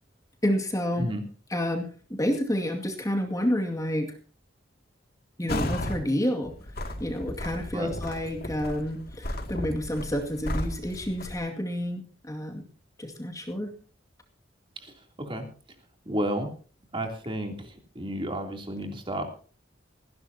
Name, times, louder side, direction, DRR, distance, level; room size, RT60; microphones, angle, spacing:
voice 1, 0.4-1.1 1.5-1.9 2.2-4.1 5.4-6.5 7.0-12.6 13.0-13.7, equal, 20° left, 2 dB, 2.3 m, -29 dB
sound 1, 5.5-6.0 6.4-11.4, left 1 dB, 55° left, 2.4 m, -34 dB
voice 2, 16.0-16.5 16.9-19.3, equal, 30° right, 3 dB, 3.2 m, -32 dB
19.0 x 16.0 x 2.9 m, 0.40 s
head